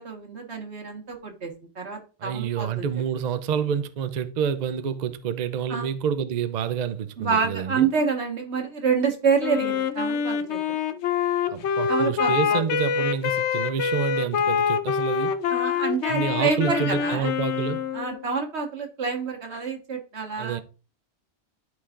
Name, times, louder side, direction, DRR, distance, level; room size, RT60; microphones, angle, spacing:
voice 1, 0.0-2.8 5.7-5.9 7.2-10.8 11.9-12.6 15.5-17.3 17.9-20.6, right 5 dB, 75° right, 1.7 m, -27 dB
voice 2, 2.2-7.9 11.5-15.3 16.1-17.9 20.4-20.6, right 7 dB, 50° right, 0.5 m, -28 dB
Wind instrument woodwind instrument, 9.4-18.2, left 7 dB, 80° left, 0.9 m, -25 dB
11.5 x 4.7 x 2.5 m
omnidirectional pair, 1.1 m